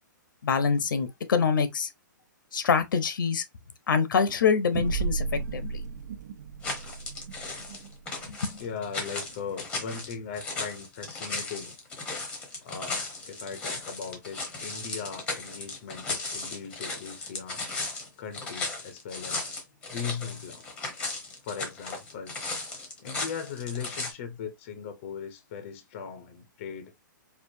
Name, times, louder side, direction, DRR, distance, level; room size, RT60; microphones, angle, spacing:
voice 1, 0.4-1.9 2.5-3.4 3.9-5.8 8.3-8.6, left 6 dB, 75° left, 0.9 m, -25 dB
sound 1, 4.7-9.6, right 5 dB, 60° right, 1.1 m, -35 dB
sound 2, 6.6-24.1, left 3 dB, 10° left, 1.1 m, -36 dB
voice 2, 8.6-11.8 12.6-17.7 18.2-19.5 19.9-20.7 21.4-22.4 23.0-26.9, left 6 dB, 35° left, 0.8 m, -39 dB
4.6 x 2.5 x 2.7 m
hypercardioid pair, 165°, 11 cm